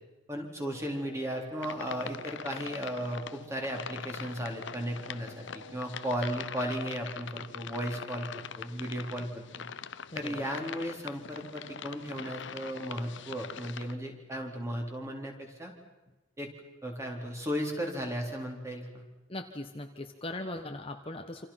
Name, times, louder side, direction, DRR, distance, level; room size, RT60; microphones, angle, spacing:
voice 1, 0.3-9.3 9.6-9.7 10.1-15.7 16.4-16.5 16.8-19.0, equal, 15° right, 1 dB, 4.0 m, -35 dB
Wind instrument woodwind instrument, 0.6-5.9, left 1 dB, 35° right, 4.1 m, -53 dB
sound 1, 1.6-13.9, left 6 dB, 60° left, 0.8 m, -43 dB
voice 2, 10.1-10.5 19.3-21.5, left 1 dB, 25° left, 5 dB, 1.3 m, -39 dB
28.0 x 27.5 x 5.9 m, 1.1 s
head